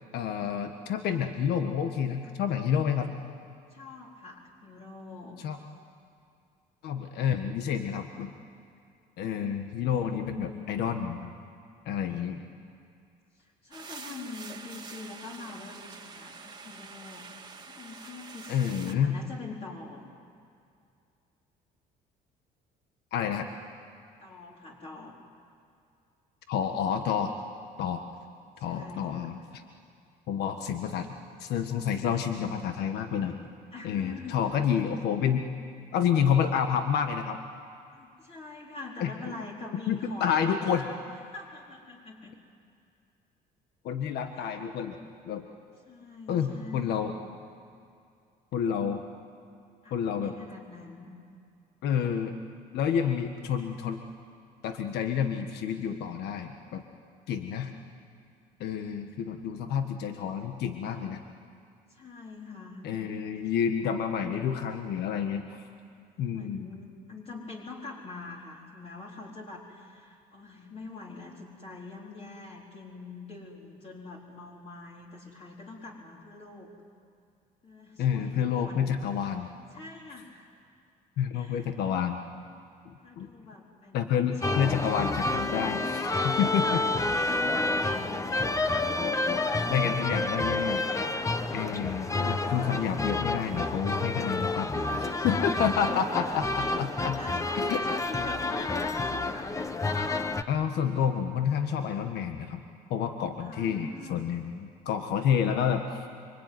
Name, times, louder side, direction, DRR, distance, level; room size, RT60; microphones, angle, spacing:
voice 1, 0.1-3.1 5.4-5.6 6.8-8.3 9.2-11.3 11.8-12.4 18.5-19.2 23.1-23.5 26.5-27.3 27.8-28.0 28.6-29.6 30.3-31.1 31.4-33.4 33.8-35.5 35.9-37.4 39.0-39.1 39.9-40.8 43.8-44.9 45.3-45.4 46.3-47.1 48.5-49.0 49.9-50.3 51.8-52.3 52.7-54.0 54.6-56.8 57.3-57.7 58.6-61.2 62.8-65.7 66.2-66.7 78.0-79.5 81.2-82.2 82.8-83.3 83.9-86.8 89.7-90.8 91.5-97.2 97.5-97.8 100.5-102.6 102.9-106.0, left 8 dB, 75° left, 6 dB, 1.5 m, -29 dB
voice 2, 3.7-5.4 9.8-10.8 13.4-17.3 17.6-20.0 24.2-25.2 28.6-29.3 33.7-34.5 37.9-42.3 44.3-44.5 45.9-47.0 49.8-51.1 61.9-63.2 66.0-66.1 66.3-76.7 77.6-79.0 79.7-80.5 81.3-81.7 83.0-84.7 86.4-88.4 89.1-89.9 91.3-92.1 94.5-95.3 96.6-96.7 97.1-99.5 103.4-104.3, left 3 dB, 35° left, -2 dB, 4.2 m, -44 dB
sound 1, 13.7-18.9, right 4 dB, 25° right, 2.0 m, -46 dB
sound 2, 84.4-100.4, left 2 dB, 20° left, 1.2 m, -29 dB
26.0 x 24.5 x 9.4 m, 2.4 s
cardioid pair, 110°, 17 cm